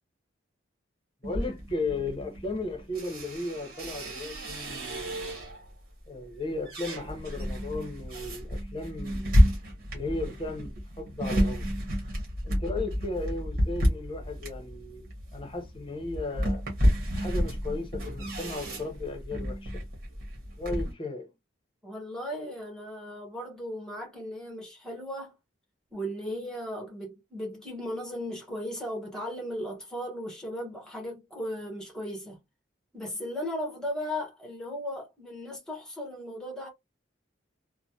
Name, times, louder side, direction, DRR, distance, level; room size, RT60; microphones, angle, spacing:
voice 1, 1.2-5.4 6.1-9.4 9.9-11.7 12.4-16.6 17.2-19.8 20.6-21.3, left 2 dB, 25° left, 0.9 m, -35 dB
sound 1, 1.2-5.7 6.2-20.9, equal, 50° right, 1.4 m, -30 dB
voice 2, 21.8-25.3 25.9-32.4 32.9-36.7, equal, 5° left, 1.1 m, -36 dB
3.1 x 2.2 x 2.7 m
head